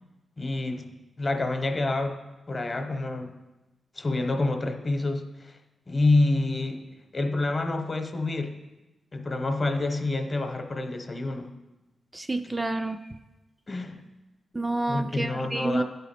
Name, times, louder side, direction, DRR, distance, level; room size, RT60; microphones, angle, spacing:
voice 1, 0.4-0.9 1.2-2.2 2.5-3.4 3.9-5.6 5.9-8.6 9.1-11.5 13.7-14.0 14.9-15.8, left 2 dB, 40° left, 6 dB, 0.8 m, -27 dB
voice 2, 12.1-13.0 14.5-15.8, right 2 dB, 20° right, 7 dB, 0.3 m, -29 dB
11.0 x 4.1 x 4.2 m, 1.1 s
cardioid pair, 65°, 0 cm